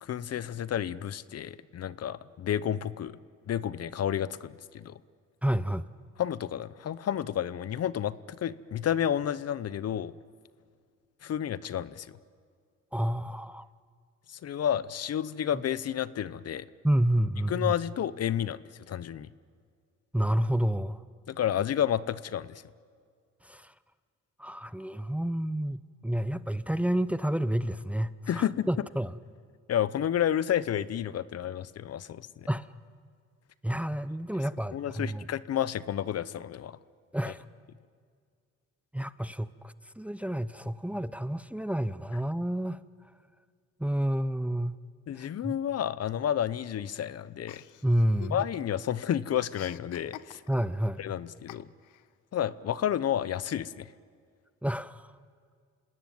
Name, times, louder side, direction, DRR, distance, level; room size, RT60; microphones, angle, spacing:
voice 1, 0.0-3.2 3.5-5.0 6.2-10.1 11.2-12.1 14.3-16.7 17.5-18.6 18.9-19.3 21.3-22.6 28.3-28.7 29.7-32.5 34.7-36.8 45.1-47.6 48.3-50.4 51.0-51.7 52.3-53.9, left 10 dB, 55° left, 17 dB, 0.8 m, -31 dB
voice 2, 5.4-5.9 12.9-13.7 16.8-17.7 20.1-21.0 23.4-23.7 24.4-29.2 32.5-32.7 33.6-35.2 37.1-37.4 38.9-42.8 43.8-44.7 45.1-45.6 47.8-48.4 50.5-51.0 54.6-55.1, right 1 dB, 5° right, 14 dB, 0.7 m, -29 dB
Chuckle chortle, 47.5-48.8 49.1-50.8 51.5-52.1, left 12 dB, 85° left, 0.8 m, -48 dB
27.0 x 19.5 x 9.4 m, 2.1 s
cardioid pair, 90°, 30 cm